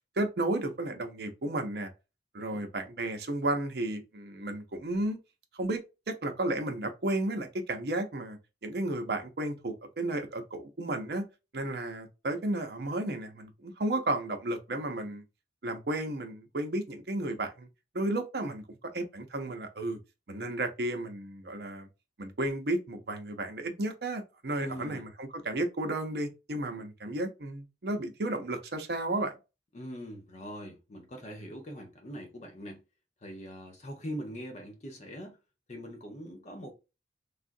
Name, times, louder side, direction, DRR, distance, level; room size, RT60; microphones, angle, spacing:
voice 1, 0.2-1.9 2.3-5.2 5.5-5.8 6.1-11.3 11.5-15.2 15.6-17.7 17.9-20.0 20.3-21.9 22.2-29.3, right 1 dB, 60° right, 0.6 m, -33 dB
voice 2, 24.6-25.1 29.7-32.8 33.2-35.4 35.7-36.7, equal, 40° left, 0.7 m, -42 dB
3.4 x 2.4 x 2.6 m
head